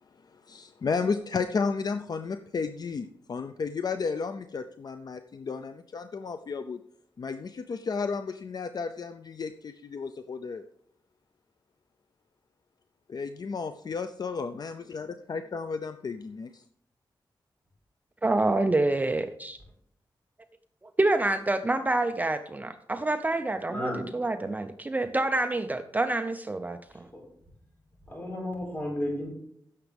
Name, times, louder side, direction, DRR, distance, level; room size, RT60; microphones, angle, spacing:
voice 1, 0.3-6.8 7.2-10.6 13.1-16.6, left 5 dB, 55° left, 9 dB, 0.5 m, -33 dB
voice 2, 18.2-19.6 21.0-27.1, right 2 dB, 20° right, 8 dB, 0.6 m, -27 dB
voice 3, 23.7-24.0 27.1-27.2 28.1-29.3, left 1 dB, 25° left, -2 dB, 5.0 m, -33 dB
16.0 x 6.9 x 3.5 m, 0.70 s
wide cardioid pair, 125°, 8 cm